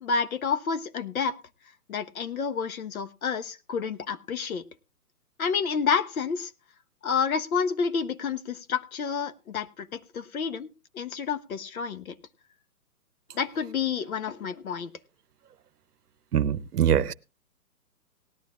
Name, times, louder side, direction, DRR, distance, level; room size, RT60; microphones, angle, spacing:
voice 1, 0.0-1.4 1.9-4.6 5.4-6.5 7.0-10.7 10.9-12.2 13.3-14.9, left 6 dB, 60° left, 1.0 m, -29 dB
voice 2, 16.3-17.1, right 9 dB, 70° right, 0.8 m, -23 dB
18.5 x 11.5 x 2.4 m
hypercardioid pair, 145°, 48 cm